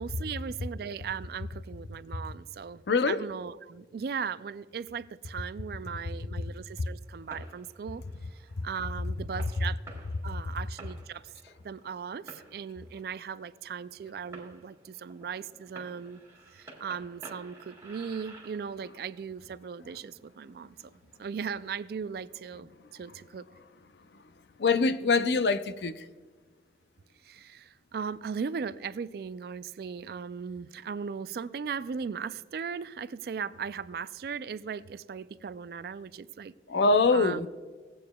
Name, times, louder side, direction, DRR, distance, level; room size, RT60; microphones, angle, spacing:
voice 1, 0.0-8.0 8.6-9.8 10.2-11.3 11.6-16.2 16.5-20.8 21.2-23.4 27.2-36.5 37.1-37.5, right 6 dB, 60° right, 0.3 m, -38 dB
voice 2, 2.9-3.2 24.6-26.0 36.7-37.5, left 4 dB, 70° left, 0.5 m, -24 dB
Fireworks, 7.0-21.8, right 3 dB, 15° right, 1.7 m, -53 dB
16.5 x 8.5 x 2.3 m
head